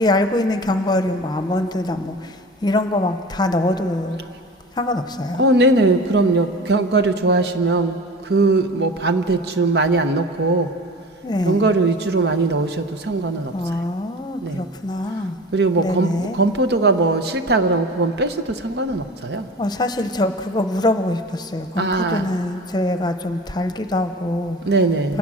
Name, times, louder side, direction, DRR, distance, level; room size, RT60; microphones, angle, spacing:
voice 1, 0.0-4.2 4.7-5.5 11.2-11.7 13.5-15.4 15.8-16.4 19.6-24.6, left 1 dB, 25° left, 8 dB, 0.8 m, -23 dB
voice 2, 5.4-8.0 8.2-10.7 11.4-13.5 14.4-14.7 15.5-19.5 21.8-22.3 24.6-25.2, right 2 dB, 70° right, 8 dB, 0.9 m, -19 dB
27.5 x 17.0 x 6.4 m, 2.6 s
head